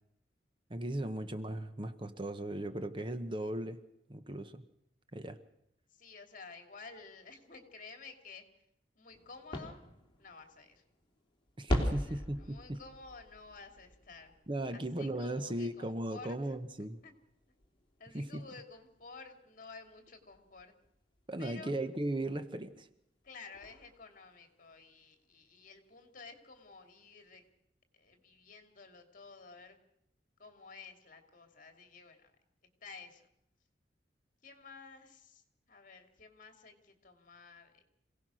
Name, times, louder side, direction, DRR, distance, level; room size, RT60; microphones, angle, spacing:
voice 1, 0.7-3.8 4.1-4.7 5.1-5.4 11.6-12.8 14.5-17.0 18.1-18.4 21.3-22.9, right 1 dB, 30° right, 10 dB, 1.0 m, -37 dB
voice 2, 5.9-8.4 9.0-9.8 10.2-10.8 11.9-14.3 14.7-16.5 17.0-17.1 18.0-20.7 21.4-21.8 23.2-27.4 27.9-29.8 30.4-32.3 32.8-33.3 34.4-37.8, left 4 dB, 50° left, 6 dB, 2.6 m, -52 dB
sound 1, 9.1-21.5 22.7-22.8 23.2-23.3 23.5-24.7, equal, 30° left, 3.2 m, -42 dB
26.5 x 17.5 x 6.3 m, 0.79 s
head